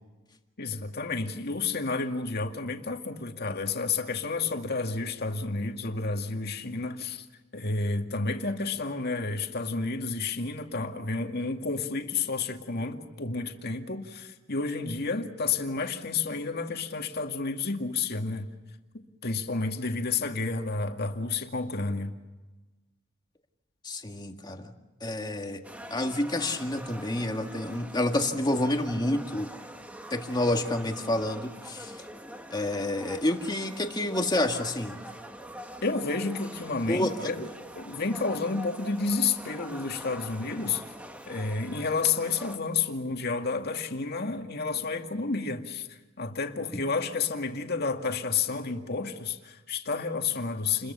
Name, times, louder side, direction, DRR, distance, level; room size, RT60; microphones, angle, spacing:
voice 1, 0.6-7.3 7.5-18.5 19.2-22.1 35.8-37.5 37.8-40.8 41.3-50.9, left 4 dB, 55° left, 2.2 m, -30 dB
voice 2, 23.8-24.7 25.0-25.6 25.9-29.5 30.1-31.9 32.5-35.0 36.9-37.3 46.7-46.8, left 1 dB, 20° left, 2.0 m, -29 dB
sound 1, 25.6-42.6, equal, 5° right, 1.6 m, -44 dB
29.5 x 22.0 x 6.9 m
head